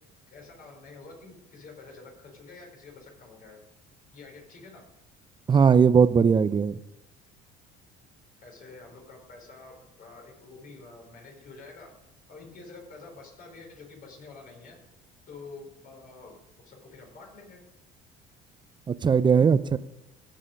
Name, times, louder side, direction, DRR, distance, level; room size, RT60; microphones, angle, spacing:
voice 1, 0.3-3.6 4.1-4.9 8.4-11.9 12.3-14.8 15.3-16.4 16.6-17.6, left 3 dB, 50° left, 1 dB, 4.2 m, -48 dB
voice 2, 5.5-6.8 18.9-19.8, right 6 dB, 25° right, 15 dB, 0.5 m, -19 dB
16.5 x 5.6 x 5.1 m, 0.96 s
supercardioid pair, 100°, 19 cm